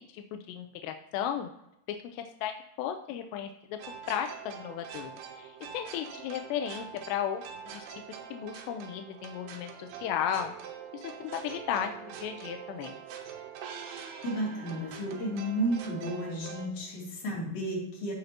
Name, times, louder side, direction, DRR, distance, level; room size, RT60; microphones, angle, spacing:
voice 1, 0.1-1.5 1.9-3.8 4.1-5.1 5.4-7.4 7.7-10.5 10.9-13.0, left 9 dB, 85° left, 7 dB, 2.7 m, -35 dB
sound 1, 3.8-16.7, right 8 dB, 80° right, 2.8 m, -44 dB
voice 2, 14.2-18.1, right 1 dB, 50° left, -4 dB, 3.8 m, -32 dB
14.5 x 5.2 x 2.8 m, 0.84 s
omnidirectional pair, 4.8 m